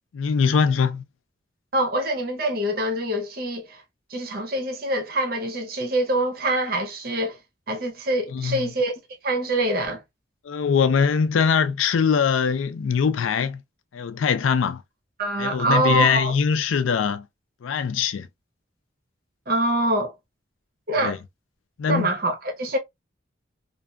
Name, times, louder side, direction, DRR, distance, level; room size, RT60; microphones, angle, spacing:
voice 1, 0.1-1.0 8.3-8.7 10.4-13.6 13.9-14.8 15.4-17.3 17.6-18.3 21.0-21.2 21.8-22.1, left 6 dB, 85° left, 0.4 m, -22 dB
voice 2, 1.7-3.8 4.1-7.4 7.7-8.9 9.2-10.0 15.2-16.3 19.5-20.1 20.9-21.2 21.9-22.8, right 1 dB, 50° right, 0.7 m, -25 dB
2.6 x 2.3 x 2.2 m
head